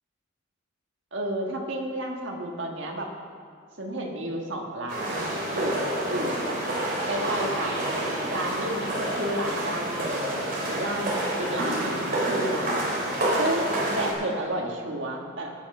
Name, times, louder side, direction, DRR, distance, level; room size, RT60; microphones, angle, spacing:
voice 1, 1.1-3.1 3.8-5.2 5.5-6.6 7.1-8.0 8.3-10.4 10.7-12.8 13.4-15.5, right 1 dB, 60° right, 1 dB, 1.7 m, -31 dB
sound 1, 4.9-14.1, right 1 dB, 45° right, 3.6 m, -28 dB
18.5 x 6.5 x 5.6 m, 2.2 s
head